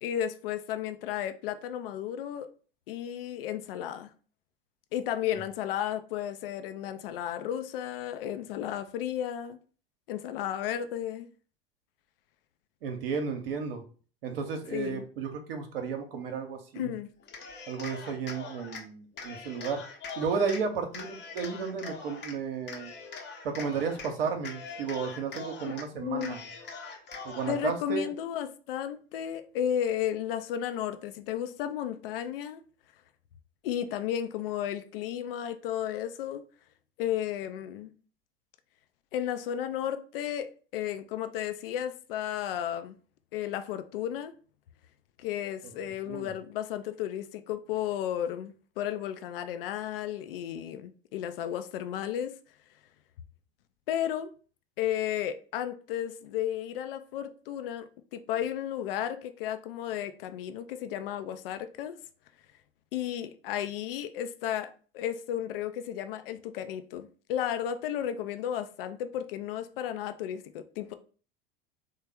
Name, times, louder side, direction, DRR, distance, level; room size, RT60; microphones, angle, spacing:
voice 1, 0.0-2.5 2.9-4.1 4.9-9.6 10.1-11.3 14.7-15.0 16.7-17.1 26.0-26.4 27.5-32.6 33.6-36.4 37.0-37.9 39.1-43.0 43.3-44.3 45.2-52.3 53.9-54.3 54.8-62.0 62.9-70.9, left 10 dB, 65° left, 0.5 m, -33 dB
voice 2, 12.8-13.8 14.2-16.9 17.7-19.8 20.2-22.9 23.4-26.4 27.2-28.1 46.0-46.3, right 6 dB, 70° right, 0.7 m, -33 dB
Cheering, 17.2-18.8 19.2-20.6 20.9-22.3 22.7-24.1 24.4-25.8 26.2-27.6, left 5 dB, 35° left, 0.8 m, -42 dB
3.1 x 2.1 x 3.4 m
hypercardioid pair, 85°, 30 cm